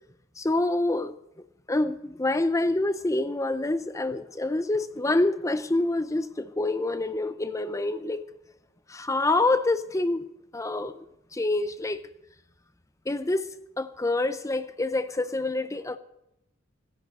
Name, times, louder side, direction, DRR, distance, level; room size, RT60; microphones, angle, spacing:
voice 1, 0.4-1.2 1.7-8.2 8.9-10.3 10.5-11.0 11.3-12.0 13.1-16.0, left 2 dB, 15° left, 0.6 m, -27 dB
16.5 x 11.0 x 6.4 m
head